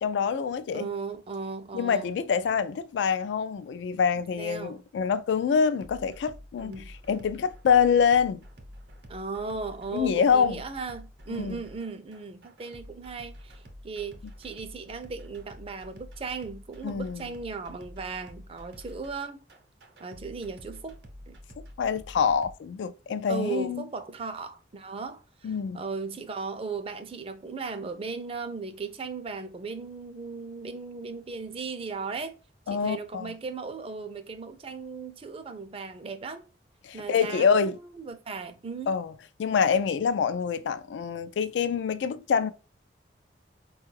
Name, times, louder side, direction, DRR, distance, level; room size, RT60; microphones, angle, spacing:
voice 1, 0.0-0.9 1.7-6.7 7.1-8.4 9.9-10.6 11.4-11.6 16.8-17.3 21.8-23.8 25.4-25.8 32.7-33.3 36.8-37.8 38.9-39.1 39.4-42.5, left 6 dB, 90° left, 0.3 m, -25 dB
voice 2, 0.7-2.1 4.4-4.8 6.6-6.9 9.1-19.4 20.0-21.0 21.3-21.4 23.3-32.3 32.7-36.5 36.9-38.9, right 4 dB, 30° right, 0.4 m, -37 dB
sound 1, 5.8-22.5, equal, 70° right, 0.7 m, -48 dB
4.3 x 2.3 x 3.1 m
head